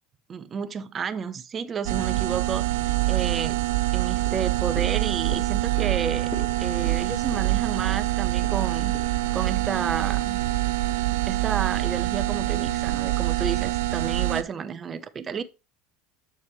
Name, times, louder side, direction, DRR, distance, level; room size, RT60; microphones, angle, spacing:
voice 1, 0.3-3.6 3.9-6.3 6.6-8.9 9.3-10.4 11.1-15.4, right 6 dB, 30° right, 0.8 m, -31 dB
sound 1, 1.9-14.4, right 18 dB, 80° right, 0.5 m, -25 dB
sound 2, 4.2-10.7 11.1-11.2, left 3 dB, 45° left, 3.0 m, -44 dB
7.1 x 6.2 x 3.1 m
supercardioid pair, 115°, 0 cm